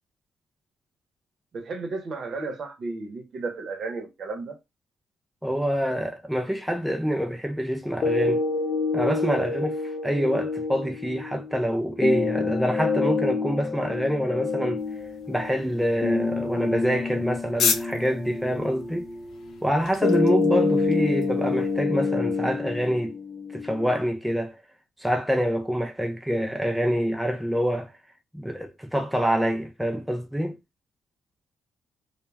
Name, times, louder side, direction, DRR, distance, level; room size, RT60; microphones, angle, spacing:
voice 1, 1.5-4.6, right 3 dB, 55° right, 0.8 m, -33 dB
voice 2, 5.4-8.4 8.9-14.8 15.3-19.1 19.6-23.1 23.5-24.6 25.0-27.9 28.3-30.6, equal, ahead, 0.4 m, -26 dB
sound 1, 8.0-24.0, left 3 dB, 35° left, 0.6 m, -27 dB
sound 2, 14.8-21.8, left 6 dB, 80° left, 0.5 m, -34 dB
2.2 x 2.2 x 3.2 m
cardioid pair, 90°, 0 cm